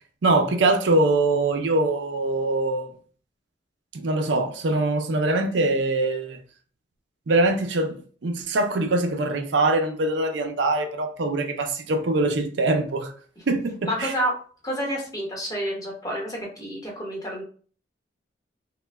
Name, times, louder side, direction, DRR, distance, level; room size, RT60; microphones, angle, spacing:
voice 1, 0.2-2.9 3.9-6.4 7.3-13.1 13.5-14.1, right 2 dB, 75° right, 0.5 m, -23 dB
voice 2, 13.8-14.3 14.6-17.4, equal, 20° left, 1.0 m, -29 dB
3.1 x 2.1 x 3.3 m
head